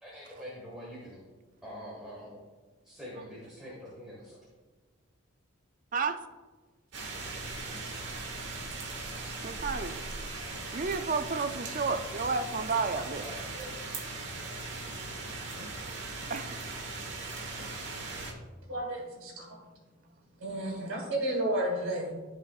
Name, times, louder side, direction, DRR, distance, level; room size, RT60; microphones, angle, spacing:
voice 1, 0.0-1.3 1.6-2.4 2.8-4.4 13.0-13.8, equal, 5° right, -8 dB, 1.7 m, -45 dB
sound 1, 6.9-18.3, right 3 dB, 60° right, 1.5 m, -39 dB
voice 2, 9.4-10.0 10.7-13.2 16.3-16.6, right 4 dB, 40° right, 8 dB, 0.4 m, -31 dB
voice 3, 18.7-19.6 20.4-22.1, right 1 dB, 90° right, -3 dB, 2.3 m, -32 dB
14.0 x 4.8 x 2.4 m, 1.3 s
head